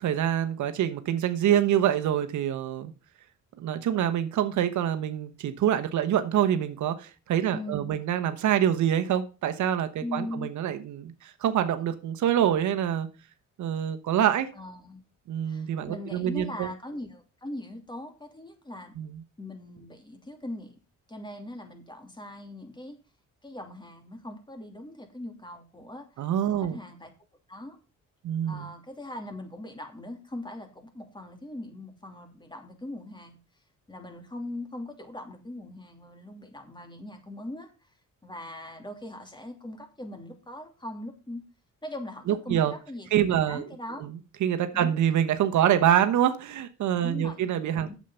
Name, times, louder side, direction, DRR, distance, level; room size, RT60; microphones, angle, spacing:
voice 1, 0.0-2.9 3.6-13.1 13.6-14.5 15.3-16.7 19.0-19.2 26.2-26.8 28.2-28.7 42.3-42.7 43.1-43.7 44.0-47.9, right 10 dB, 75° right, 9 dB, 1.1 m, -26 dB
voice 2, 7.5-8.0 10.0-10.5 14.5-15.0 15.5-18.9 19.4-20.8 21.1-23.0 23.4-26.3 26.6-27.1 27.5-27.8 28.5-33.4 33.9-37.9 38.2-41.4 41.8-44.1 44.7-44.9 47.0-47.4 47.9-48.0, left 1 dB, 15° left, 5 dB, 2.8 m, -40 dB
8.4 x 7.5 x 5.6 m, 0.33 s
cardioid pair, 90°, 30 cm